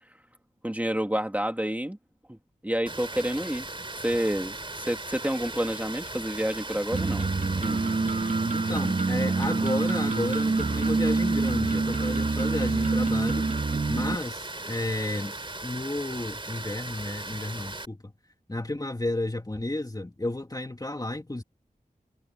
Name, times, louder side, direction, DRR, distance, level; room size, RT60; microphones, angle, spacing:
voice 1, 0.6-2.0 2.3-2.4 2.6-3.7 4.0-7.3 7.6-7.8, equal, 10° right, 2.3 m, -29 dB
Water, 2.9-17.8, right 2 dB, 35° right, 3.1 m, -38 dB
sound 1, 6.9-14.1, right 3 dB, 55° right, 1.5 m, -26 dB
voice 2, 8.5-13.5 13.9-15.4 15.6-18.1 18.5-21.4, left 1 dB, 25° left, 2.5 m, -32 dB
wide cardioid pair, 75°, 15 cm